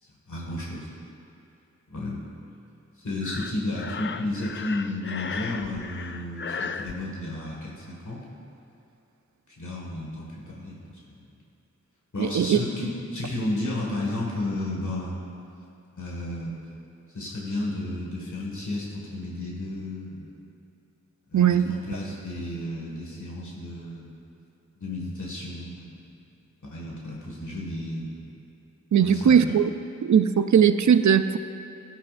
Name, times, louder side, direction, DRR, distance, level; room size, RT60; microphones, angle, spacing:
voice 1, 0.0-0.9 1.9-2.2 3.0-8.2 9.5-11.3 12.1-15.2 16.0-16.6 17.1-20.4 21.3-24.1 24.8-25.9 26.6-28.2 29.0-29.5, left 1 dB, 85° left, -4 dB, 1.9 m, -33 dB
Breathing, 3.2-6.9, left 5 dB, 40° left, 0.4 m, -35 dB
voice 2, 12.2-12.6 21.3-21.7 28.9-29.7 30.0-31.4, right 8 dB, 75° right, 11 dB, 0.5 m, -19 dB
16.0 x 10.0 x 2.6 m, 2.8 s
wide cardioid pair, 60°, 29 cm